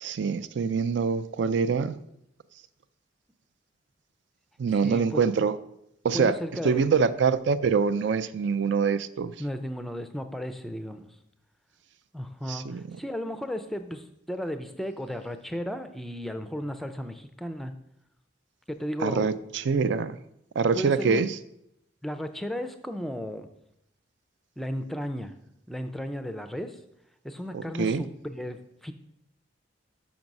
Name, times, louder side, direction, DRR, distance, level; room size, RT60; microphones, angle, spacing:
voice 1, 0.0-2.0 4.6-5.5 6.0-6.3 6.6-9.3 12.5-12.8 19.0-20.2 20.6-21.3 27.5-28.0, right 5 dB, 65° right, 14 dB, 0.4 m, -25 dB
voice 2, 4.7-5.2 6.1-7.1 9.4-11.1 12.1-17.7 18.7-19.4 20.7-21.3 22.0-23.5 24.6-25.3 25.7-26.8 27.2-28.9, equal, ahead, 8 dB, 0.4 m, -34 dB
6.0 x 6.0 x 5.3 m, 0.80 s
head